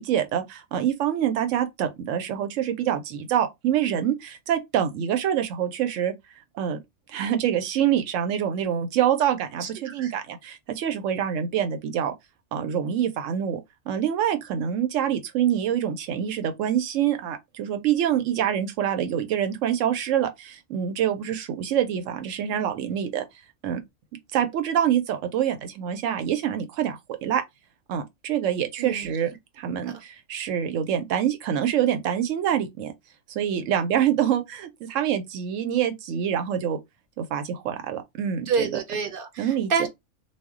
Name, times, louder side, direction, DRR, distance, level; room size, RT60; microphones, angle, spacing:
voice 1, 0.0-6.1 6.5-6.8 7.1-12.1 12.5-13.6 13.9-23.2 23.6-23.8 24.3-27.4 27.9-32.9 33.3-36.8 37.2-38.8 39.4-39.9, right 9 dB, 80° right, 0.9 m, -26 dB
voice 2, 9.6-10.1 28.8-29.1 29.9-30.0 38.5-39.9, right 5 dB, 55° right, 0.6 m, -28 dB
2.2 x 2.1 x 3.5 m
omnidirectional pair, 1.3 m